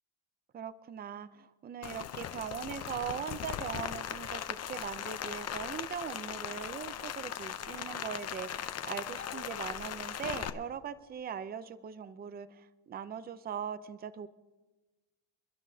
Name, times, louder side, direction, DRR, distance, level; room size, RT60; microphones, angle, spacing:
voice 1, 0.5-14.3, right 8 dB, 20° right, 14 dB, 0.4 m, -40 dB
Rain, 1.8-10.5, left 9 dB, 35° left, 0.6 m, -39 dB
28.0 x 11.5 x 2.7 m, 1.2 s
cardioid pair, 130°, 47 cm